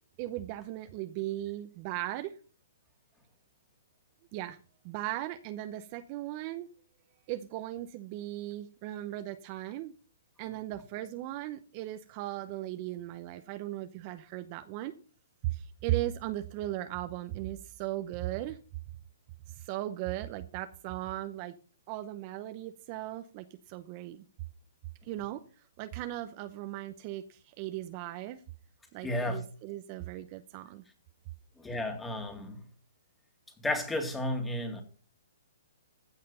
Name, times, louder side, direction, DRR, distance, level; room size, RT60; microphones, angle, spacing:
voice 1, 0.2-2.4 4.3-4.6 4.8-6.7 7.3-9.9 10.4-14.9 15.4-18.6 19.5-21.5 21.9-24.2 25.0-28.4 28.9-30.8, right 15 dB, 35° right, 0.7 m, -37 dB
voice 2, 29.0-29.4 31.6-32.6 33.6-34.8, left 1 dB, 5° left, 2.2 m, -33 dB
15.0 x 5.7 x 5.6 m
hypercardioid pair, 145°, 0 cm